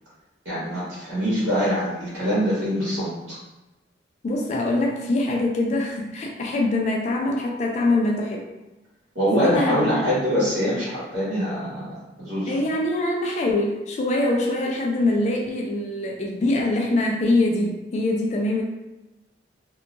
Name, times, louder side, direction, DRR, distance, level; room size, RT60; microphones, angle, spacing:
voice 1, 0.4-3.4 9.1-12.6, equal, 85° right, -9 dB, 1.3 m, -24 dB
voice 2, 4.2-8.5 9.4-9.9 12.5-18.6, left 2 dB, 40° left, 0 dB, 0.3 m, -23 dB
2.7 x 2.3 x 2.5 m, 1.0 s
head